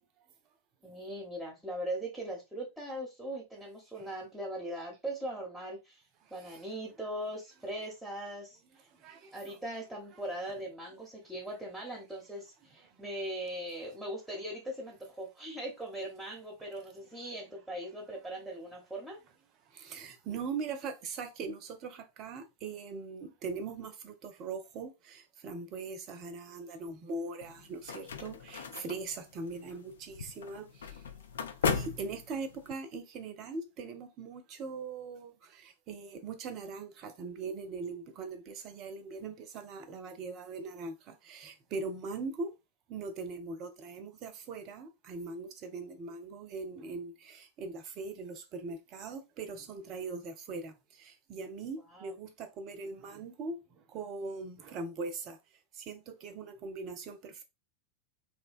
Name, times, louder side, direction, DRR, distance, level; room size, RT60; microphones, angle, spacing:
voice 1, 0.8-6.0 6.3-8.9 9.3-19.2 51.9-52.1, right 1 dB, ahead, 0.8 m, -40 dB
voice 2, 9.0-9.5 19.7-31.1 31.6-42.5 42.9-55.4 55.7-57.4, right 4 dB, 35° right, 0.5 m, -41 dB
sound 1, 27.4-32.7, left 6 dB, 65° left, 0.3 m, -37 dB
2.7 x 2.1 x 2.5 m
figure-of-eight pair, 90°, 0 cm